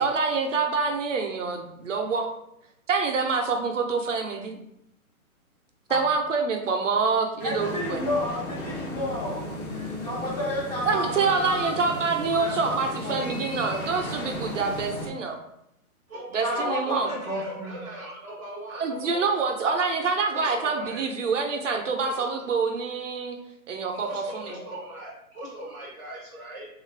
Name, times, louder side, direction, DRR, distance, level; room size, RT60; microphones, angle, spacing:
voice 1, 0.0-2.3 2.9-4.6 5.9-8.0 10.9-15.4 16.3-17.1 18.7-23.4 23.7-24.5, right 4 dB, 60° right, 4 dB, 0.6 m, -26 dB
sound 1, 7.4-15.1, equal, 75° left, 1.2 m, -35 dB
voice 2, 7.4-11.7 12.3-13.5 16.4-17.8, left 1 dB, 25° left, -5 dB, 0.8 m, -31 dB
voice 3, 16.1-19.4 20.3-21.0 22.0-22.3 23.9-26.7, right 1 dB, 10° right, -9 dB, 0.6 m, -40 dB
3.5 x 2.4 x 3.2 m, 0.81 s
hypercardioid pair, 160°, 43 cm